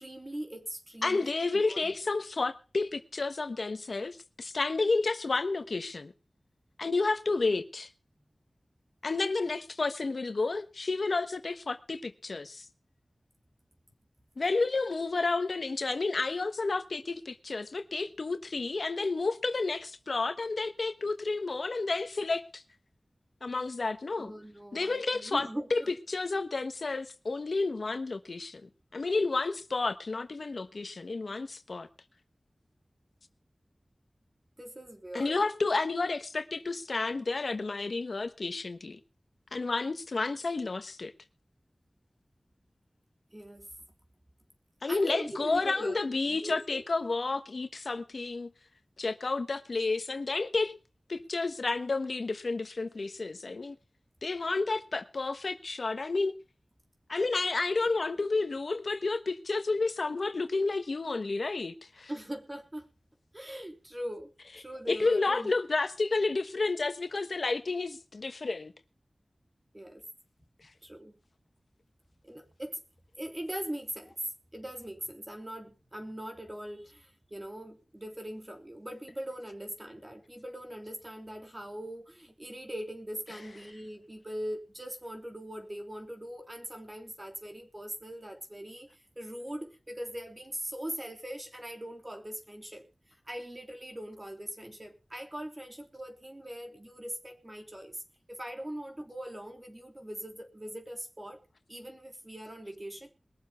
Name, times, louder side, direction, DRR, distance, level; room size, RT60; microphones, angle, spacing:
voice 1, 0.0-1.4 1.6-1.9 24.2-25.9 34.6-35.4 43.3-43.7 44.9-46.0 46.2-46.8 62.1-62.9 63.3-65.5 69.7-70.0 70.8-71.1 72.2-72.8 73.2-74.1 74.5-92.9 93.3-98.0 98.3-101.4 101.7-103.1, right 1 dB, 25° right, 3.4 m, -41 dB
voice 2, 1.0-6.1 6.8-7.9 9.0-12.7 14.4-22.6 23.4-24.3 24.7-25.8 26.1-31.9 35.1-39.0 39.5-41.1 44.8-48.5 49.0-50.8 51.1-53.8 54.2-56.3 57.1-62.1 64.9-68.7, left 3 dB, 75° left, 1.2 m, -31 dB
21.0 x 7.3 x 5.7 m
wide cardioid pair, 80°, 0 cm